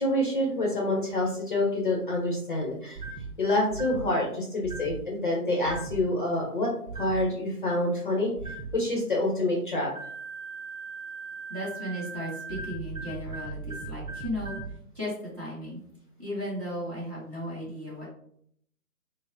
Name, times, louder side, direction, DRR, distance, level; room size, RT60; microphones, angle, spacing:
voice 1, 0.0-3.0 3.4-6.7 6.9-8.3 8.7-9.9, left 1 dB, 35° left, -2 dB, 0.7 m, -27 dB
sound 1, 3.0-3.3 3.7-4.1 4.6-5.0 5.7-6.0 6.9-7.2 8.4-8.7 10.0-14.7, right 4 dB, 65° right, 0.7 m, -38 dB
voice 2, 11.5-14.6 14.9-15.8 16.2-18.1, equal, 15° right, -8 dB, 0.9 m, -35 dB
5.4 x 2.0 x 2.6 m, 0.67 s
hypercardioid pair, 155°, 46 cm